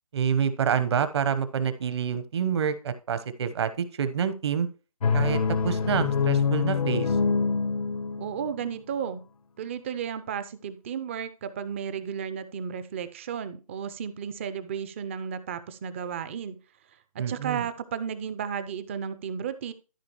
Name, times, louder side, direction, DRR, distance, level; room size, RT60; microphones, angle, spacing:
voice 1, 0.1-4.7 5.1-7.2 17.2-17.6, right 7 dB, 45° right, 12 dB, 1.0 m, -27 dB
sound 1, 5.0-8.7, left 5 dB, 75° left, 0.7 m, -25 dB
voice 2, 8.2-9.2 9.6-16.6 17.1-19.7, right 7 dB, 20° right, 13 dB, 0.4 m, -33 dB
13.5 x 4.9 x 3.0 m, 0.33 s
figure-of-eight pair, 150°, 19 cm